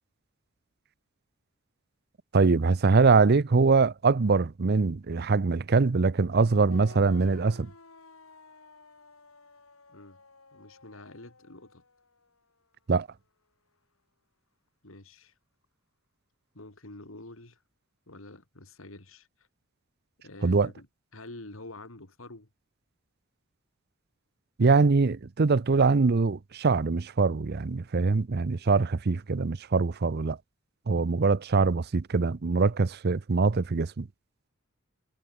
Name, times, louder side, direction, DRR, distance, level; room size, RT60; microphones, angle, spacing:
voice 1, 2.3-7.7 12.9-13.1 20.4-20.7 24.6-30.4 30.9-34.1, right 4 dB, 50° right, 0.6 m, -23 dB
sound 1, 6.7-12.4, left 3 dB, 90° left, 4.8 m, -53 dB
voice 2, 9.9-10.2 10.5-11.8 14.8-15.3 16.5-17.6 18.1-19.5 20.2-20.9 21.1-22.5, left 2 dB, 75° left, 3.1 m, -47 dB
head